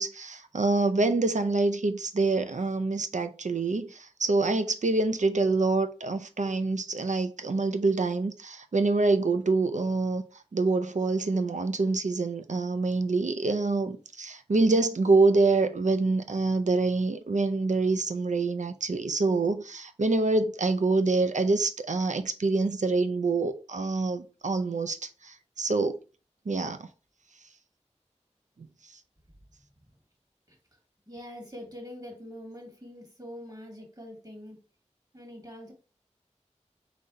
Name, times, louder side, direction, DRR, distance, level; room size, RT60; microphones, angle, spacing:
voice 1, 0.0-10.2 10.5-26.0 26.5-26.9, right 3 dB, 85° right, 0.5 m, -26 dB
voice 2, 31.1-34.6 35.1-35.7, equal, 30° right, 1.9 m, -44 dB
4.0 x 3.3 x 3.7 m
wide cardioid pair, 45°, 12 cm